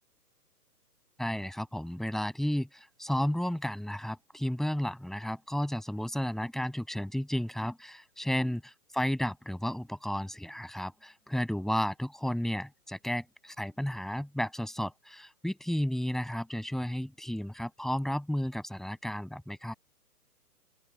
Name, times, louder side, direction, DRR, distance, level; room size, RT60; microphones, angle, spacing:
voice 1, 1.2-8.6 8.9-19.7, equal, ahead, 7.6 m, -33 dB
open air
figure-of-eight pair, 130°, 48 cm